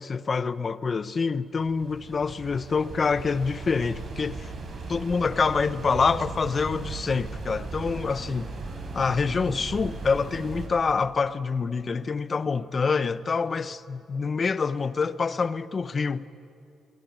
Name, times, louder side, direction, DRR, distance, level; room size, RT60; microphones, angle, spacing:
voice 1, 0.0-4.5 4.9-8.5 8.9-16.2, left 5 dB, 35° left, 0.8 m, -26 dB
sound 1, 1.5-10.7, right 3 dB, 50° right, 5.2 m, -37 dB
22.5 x 20.0 x 9.4 m
cardioid pair, 90°, 0 cm